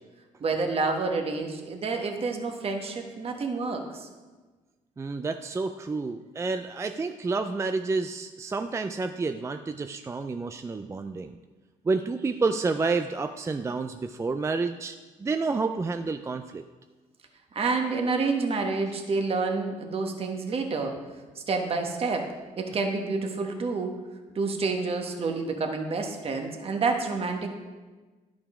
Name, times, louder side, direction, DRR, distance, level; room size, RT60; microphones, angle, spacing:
voice 1, 0.4-4.1 17.5-21.0 21.3-23.9 24.3-27.5, right 4 dB, 40° right, 3 dB, 1.3 m, -28 dB
voice 2, 5.0-11.3 11.9-16.6, right 4 dB, 20° right, 8 dB, 0.4 m, -29 dB
11.0 x 6.1 x 4.9 m, 1.3 s
cardioid pair, 90°, 15 cm